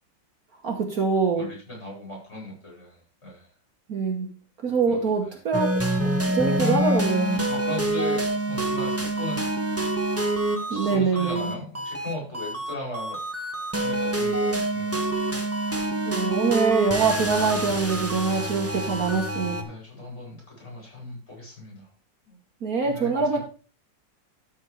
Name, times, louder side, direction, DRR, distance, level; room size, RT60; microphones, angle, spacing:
voice 1, 0.6-1.5 3.9-4.3 4.6-5.7 6.0-7.3 10.7-11.5 16.0-19.6 22.6-23.4, right 5 dB, 55° right, 3 dB, 1.6 m, -24 dB
voice 2, 1.4-3.0 3.2-3.5 4.9-5.4 6.3-6.5 7.3-9.4 9.7-9.9 10.7-13.2 13.8-15.2 19.6-21.9 22.2-22.4 22.8-23.4, left 1 dB, 35° left, -2 dB, 5.1 m, -38 dB
sound 1, 5.5-19.6, right 1 dB, 15° right, 0.6 m, -26 dB
12.5 x 4.5 x 4.7 m, 0.37 s
omnidirectional pair, 2.0 m